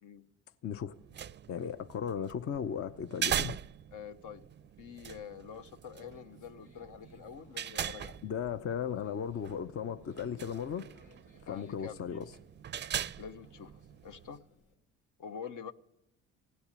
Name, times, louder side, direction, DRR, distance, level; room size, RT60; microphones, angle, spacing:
voice 1, 0.6-0.9 1.5-3.6 8.2-10.8 11.4-12.3, left 8 dB, 40° left, 0.7 m, -36 dB
sound 1, 0.9-14.4, right 9 dB, 35° right, 0.5 m, -41 dB
voice 2, 3.9-4.5 4.8-8.2 11.5-12.0 13.2-13.7 14.0-14.4 15.2-15.7, left 7 dB, 60° left, 1.0 m, -46 dB
Conversation, 5.9-14.7, left 2 dB, 80° left, 3.1 m, -61 dB
16.5 x 7.1 x 9.8 m
supercardioid pair, 70°, 34 cm